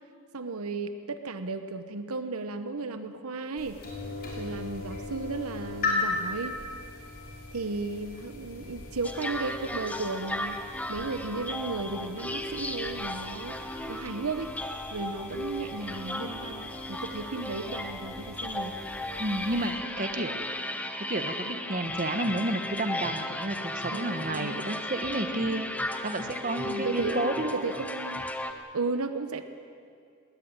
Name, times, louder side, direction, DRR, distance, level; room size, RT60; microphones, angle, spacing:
voice 1, 0.3-3.8 4.4-6.6 7.5-10.6 10.9-14.5 14.9-18.8 23.9-24.7 26.6-29.4, right 3 dB, 75° right, 9 dB, 1.0 m, -35 dB
sound 1, 3.6-19.7, left 3 dB, 40° left, 5.7 m, -39 dB
sound 2, 9.0-28.5, left 1 dB, 5° left, 1.0 m, -35 dB
voice 2, 19.2-20.5 21.1-25.7 26.0-27.7, right 1 dB, 35° right, 7 dB, 1.3 m, -31 dB
20.5 x 19.0 x 9.0 m, 2.4 s
head